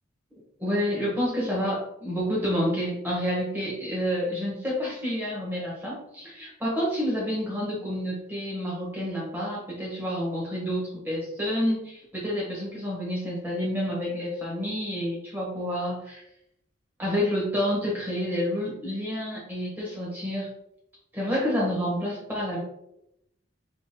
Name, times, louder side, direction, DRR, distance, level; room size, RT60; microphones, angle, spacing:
voice 1, 0.6-16.2 17.0-20.5 21.1-22.6, equal, 10° right, -5 dB, 1.4 m, -29 dB
4.0 x 3.2 x 3.8 m, 0.81 s
head